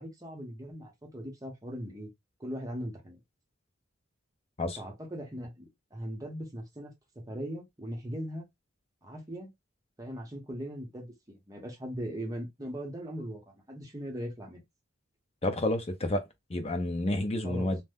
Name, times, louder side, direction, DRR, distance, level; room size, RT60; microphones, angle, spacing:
voice 1, 0.0-2.1 2.4-3.2 4.8-6.9 7.3-8.5 9.0-9.5 10.0-13.4 13.7-14.6 17.4-17.7, equal, 20° right, 0.8 m, -39 dB
voice 2, 15.4-16.2 16.5-17.8, left 1 dB, 30° left, 0.5 m, -29 dB
2.7 x 2.1 x 3.4 m
head